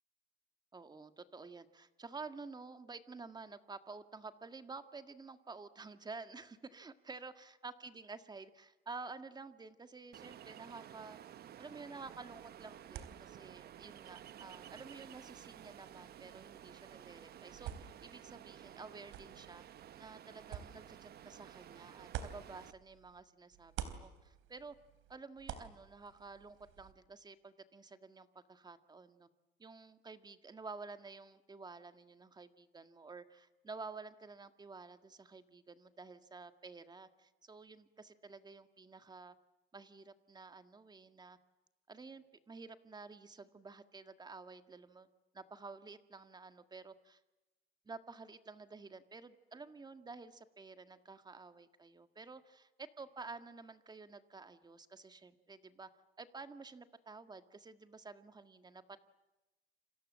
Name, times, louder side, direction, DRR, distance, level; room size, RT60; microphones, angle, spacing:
voice 1, 0.7-11.2 11.6-19.6 20.0-24.7 25.1-29.3 29.6-39.4 39.7-41.4 41.9-45.1 45.3-47.2 47.9-55.9 56.2-59.0, right 4 dB, 20° right, 9 dB, 1.8 m, -51 dB
Ocean, 10.1-22.7, right 10 dB, 50° right, 1.0 m, -54 dB
sound 1, 12.0-23.2 23.5-26.9, right 10 dB, 80° right, 3.7 m, -51 dB
29.5 x 26.5 x 7.5 m, 1.1 s
cardioid pair, 125°, 20 cm